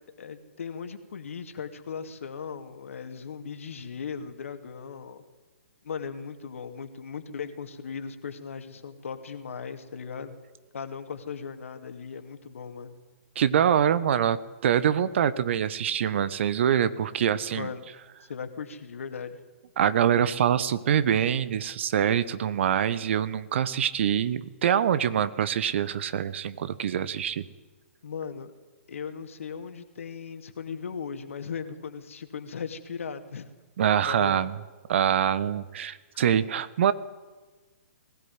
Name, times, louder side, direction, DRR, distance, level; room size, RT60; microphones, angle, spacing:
voice 1, 0.2-5.2 5.8-10.3 10.7-13.0 17.5-17.8 18.3-19.3 28.0-28.5 28.9-33.5 34.1-34.5, left 6 dB, 65° left, 8 dB, 2.5 m, -38 dB
voice 2, 13.3-17.7 19.8-27.4 33.8-34.6 34.9-36.9, right 9 dB, 55° right, 16 dB, 1.3 m, -24 dB
21.0 x 16.5 x 9.7 m, 1.3 s
figure-of-eight pair, 125°, 8 cm